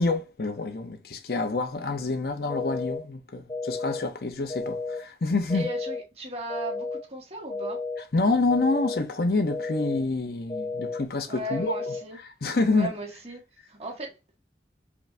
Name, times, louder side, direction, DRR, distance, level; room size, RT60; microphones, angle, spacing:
voice 1, 0.0-5.7 8.1-11.7 12.4-12.9, left 3 dB, 60° left, 0.7 m, -27 dB
sound 1, 2.5-3.0 3.5-4.0 4.5-5.0 5.5-6.0 6.5-7.0 7.5-8.0 8.5-9.0 9.5-10.0 10.5-11.0 11.5-12.0, left 3 dB, 20° left, 0.7 m, -32 dB
voice 2, 5.5-7.8 11.3-12.2 12.7-13.4 13.7-14.4, right 1 dB, 35° right, 1.7 m, -36 dB
5.0 x 2.6 x 3.3 m
head